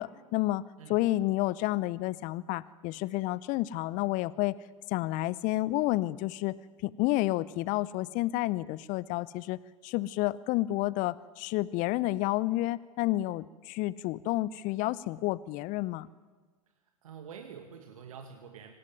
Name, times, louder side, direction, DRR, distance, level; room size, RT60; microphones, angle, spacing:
voice 1, 0.0-0.6 0.9-4.6 4.9-6.5 6.8-16.1, left 17 dB, 45° left, 20 dB, 0.8 m, -30 dB
voice 2, 17.0-18.7, right 7 dB, 70° right, 5 dB, 2.3 m, -46 dB
25.0 x 18.5 x 9.5 m, 1.4 s
figure-of-eight pair, 80°, 18 cm